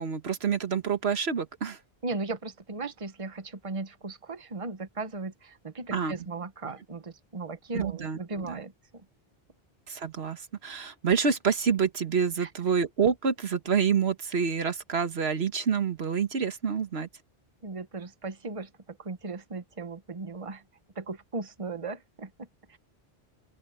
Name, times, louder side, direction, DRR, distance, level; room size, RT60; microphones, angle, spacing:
voice 1, 0.0-1.8 5.9-6.1 7.7-8.6 9.9-17.1, right 6 dB, 85° right, 1.6 m, -27 dB
voice 2, 2.0-9.0 12.4-12.5 17.6-20.6 20.9-22.5, right 3 dB, 35° right, 1.2 m, -37 dB
open air
omnidirectional pair, 1.1 m